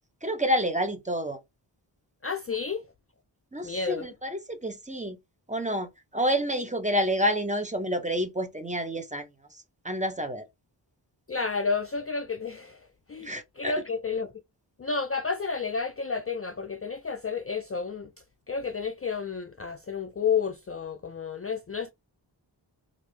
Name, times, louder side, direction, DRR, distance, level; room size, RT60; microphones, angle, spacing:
voice 1, 0.2-1.4 3.5-5.2 5.5-9.3 9.8-10.5 13.2-13.7, equal, 15° right, 0.7 m, -28 dB
voice 2, 2.2-2.9 3.6-4.1 11.3-14.3 14.8-18.1 18.5-21.9, left 5 dB, 30° left, 0.4 m, -31 dB
3.3 x 2.6 x 3.2 m
wide cardioid pair, 65°, 46 cm